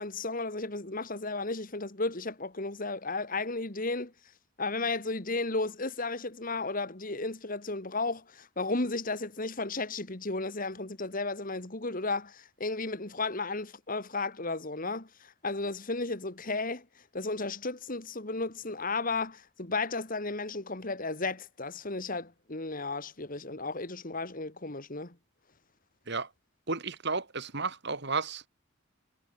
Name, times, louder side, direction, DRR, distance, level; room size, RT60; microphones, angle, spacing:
voice 1, 0.0-4.1 4.6-16.9 17.1-25.2, left 3 dB, 40° left, 2.2 m, -34 dB
voice 2, 26.7-28.4, right 4 dB, 55° right, 3.0 m, -32 dB
head